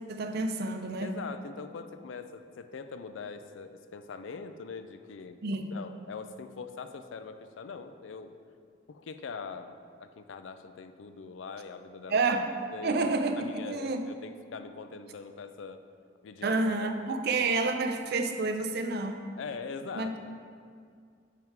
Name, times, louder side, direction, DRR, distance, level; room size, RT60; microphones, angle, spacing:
voice 1, 0.1-1.1 5.4-5.7 12.1-12.5 12.8-14.0 16.4-19.2 19.9-20.1, right 3 dB, 55° right, 6 dB, 0.5 m, -29 dB
voice 2, 1.0-5.4 5.7-8.4 8.9-12.2 12.7-13.1 13.4-15.8 16.2-17.2 19.4-20.2, left 5 dB, 80° left, 9 dB, 0.4 m, -42 dB
10.5 x 3.6 x 4.6 m, 2.2 s
head